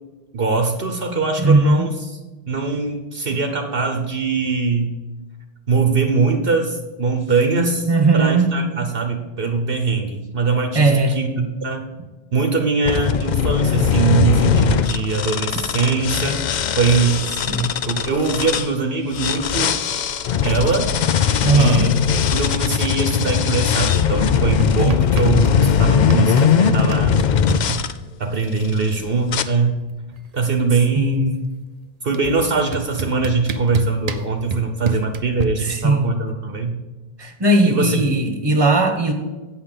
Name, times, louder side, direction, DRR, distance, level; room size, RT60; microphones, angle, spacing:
voice 1, 0.3-2.2 2.5-4.9 5.7-11.9 12.3-16.4 16.8-17.2 17.9-19.8 20.4-20.9 21.5-22.0 22.3-27.2 27.7-27.8 28.2-29.7 30.3-31.5 32.0-36.8 37.6-38.0, right 4 dB, 65° right, 5 dB, 1.1 m, -21 dB
voice 2, 1.4-1.9 7.9-8.5 10.7-11.2 15.5-15.6 17.5-17.7 21.4-21.9 24.8-25.0 30.9-31.3 35.6-36.1 37.2-39.1, right 2 dB, 25° right, 5 dB, 1.3 m, -17 dB
sound 1, 12.9-18.7 19.1-27.9 28.6-28.9 29.3-29.4, left 8 dB, 55° left, 0.6 m, -20 dB
sound 2, 24.6-25.6 25.8-27.6 28.9-29.0 29.2-29.6 29.9-31.3 32.1-32.2 32.7-35.4, right 3 dB, 45° right, 0.7 m, -28 dB
8.3 x 5.8 x 6.6 m, 1.2 s
omnidirectional pair, 1.1 m